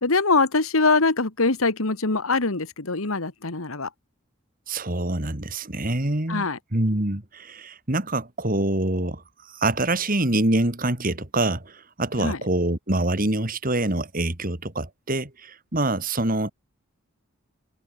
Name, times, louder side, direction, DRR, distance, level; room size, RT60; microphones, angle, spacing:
voice 1, 0.0-3.9 6.3-6.6 12.2-12.4, left 3 dB, 80° left, 1.9 m, -23 dB
voice 2, 4.7-9.2 9.5-16.5, right 2 dB, 40° right, 2.6 m, -25 dB
head